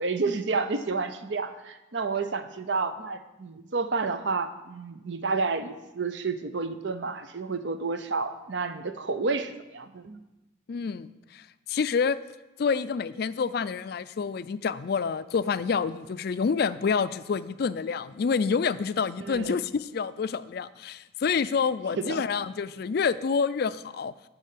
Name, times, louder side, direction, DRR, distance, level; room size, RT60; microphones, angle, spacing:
voice 1, 0.0-10.2 19.2-19.6 22.0-22.2, right 4 dB, 65° right, 10 dB, 0.7 m, -30 dB
voice 2, 10.7-12.2 12.6-24.1, left 5 dB, 55° left, 15 dB, 0.4 m, -28 dB
12.0 x 4.3 x 7.5 m, 1.0 s
head